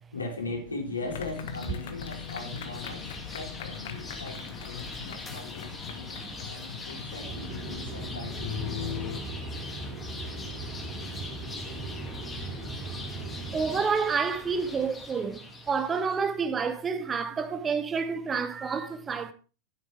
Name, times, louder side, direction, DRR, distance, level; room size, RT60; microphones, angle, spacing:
voice 1, 0.1-3.0 3.3-6.2 6.5-9.0, left 3 dB, 75° left, 3.6 m, -39 dB
sound 1, 1.0-16.2, left 3 dB, 15° left, 2.3 m, -43 dB
sound 2, 1.1-9.2, left 8 dB, 55° left, 1.3 m, -39 dB
voice 2, 6.2-6.5 9.0-9.3 13.5-19.3, right 5 dB, 20° right, 1.1 m, -29 dB
sound 3, 7.2-13.8, right 2 dB, 40° right, 3.3 m, -38 dB
11.5 x 10.0 x 3.4 m
figure-of-eight pair, 90°, 0 cm